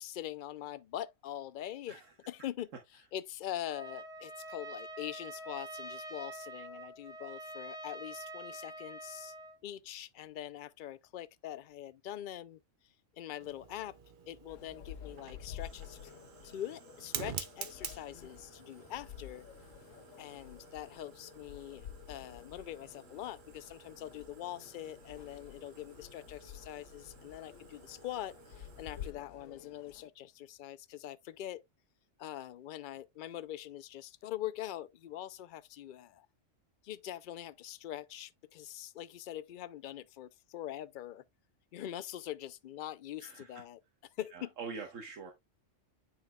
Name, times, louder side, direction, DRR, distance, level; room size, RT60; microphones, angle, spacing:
voice 1, 0.0-9.3 9.6-12.6 13.2-14.0 14.3-16.1 16.4-19.5 20.2-31.7 32.2-36.3 36.8-41.2 41.7-43.8 44.2-44.5, left 12 dB, 65° left, 0.5 m, -43 dB
Trumpet, 3.7-9.6, right 2 dB, 5° right, 0.7 m, -46 dB
Fire, 13.4-29.1, right 7 dB, 45° right, 0.8 m, -49 dB
sound 1, 14.5-30.1, left 9 dB, 85° left, 1.1 m, -51 dB
voice 2, 43.2-43.6 44.3-45.3, right 5 dB, 85° right, 1.5 m, -44 dB
9.3 x 4.8 x 2.2 m
omnidirectional pair, 1.3 m